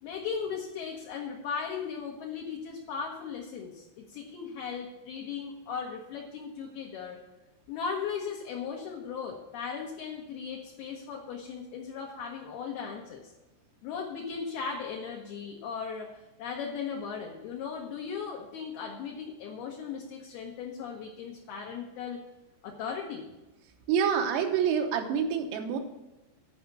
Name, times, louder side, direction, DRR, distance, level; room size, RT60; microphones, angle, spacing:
voice 1, 0.0-7.2 7.7-13.3 13.8-22.2 22.6-23.3, left 6 dB, 75° left, 0 dB, 2.3 m, -37 dB
voice 2, 23.9-25.8, right 7 dB, 85° right, 4 dB, 3.6 m, -27 dB
11.0 x 5.6 x 8.1 m, 1.0 s
omnidirectional pair, 5.8 m